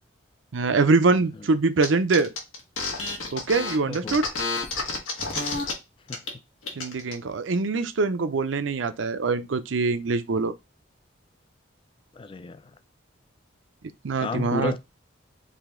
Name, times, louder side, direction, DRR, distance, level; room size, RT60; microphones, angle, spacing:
voice 1, 0.5-2.3 3.3-4.3 6.7-10.5 14.0-14.8, right 3 dB, 75° right, 0.6 m, -24 dB
sound 1, 1.8-1.9 2.1-5.7 6.1-6.3 6.6-7.1, left 3 dB, 90° left, 1.6 m, -30 dB
voice 2, 3.8-4.2 6.1-6.2 12.1-12.7 14.2-14.8, left 3 dB, 25° left, 0.3 m, -32 dB
5.0 x 2.7 x 3.7 m
head